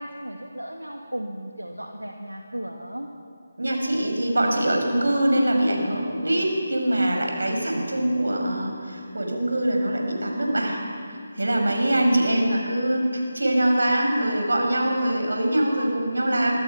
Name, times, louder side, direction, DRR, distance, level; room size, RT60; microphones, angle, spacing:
voice 1, 0.0-3.1 11.5-11.8, right 1 dB, 85° right, 2 dB, 2.2 m, -35 dB
voice 2, 3.6-10.8 11.1-16.6, right 1 dB, 70° right, 2 dB, 5.9 m, -23 dB
26.5 x 24.5 x 5.9 m, 2.3 s
figure-of-eight pair, 155°, 0 cm